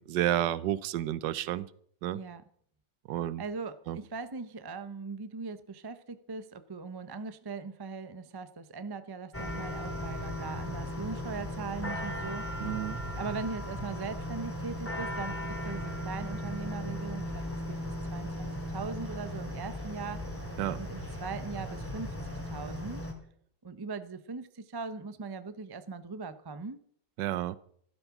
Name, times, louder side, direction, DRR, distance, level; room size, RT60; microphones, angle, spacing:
voice 1, 0.0-1.7 2.0-2.2 3.1-3.4 3.9-4.0 12.6-13.0 20.6-20.8 27.2-27.6, right 13 dB, 70° right, 17 dB, 1.4 m, -31 dB
voice 2, 2.1-2.4 3.4-12.7 13.2-17.8 18.1-20.2 20.8-23.0 23.6-26.8, right 4 dB, 30° right, 12 dB, 0.4 m, -40 dB
sound 1, 9.3-23.1, equal, 5° left, 2.7 m, -37 dB
15.5 x 12.5 x 6.0 m, 0.63 s
omnidirectional pair, 2.0 m